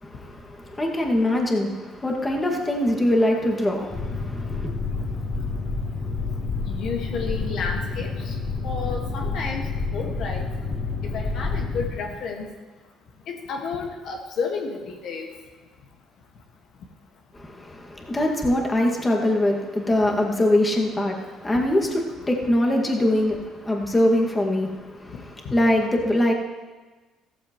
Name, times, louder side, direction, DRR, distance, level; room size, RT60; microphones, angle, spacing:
voice 1, 0.0-4.7 17.3-26.3, left 1 dB, 20° left, 0 dB, 2.0 m, -23 dB
Boat Water vehicle, 3.9-11.9, left 4 dB, 45° left, 2.9 m, -29 dB
voice 2, 6.7-8.4 8.6-9.6 9.9-10.5 11.1-12.5 13.3-15.3 21.5-21.6 25.1-25.2 25.5-25.6, left 5 dB, 65° left, 1 dB, 1.7 m, -31 dB
15.0 x 13.5 x 3.1 m, 1.3 s
supercardioid pair, 80°, 0 cm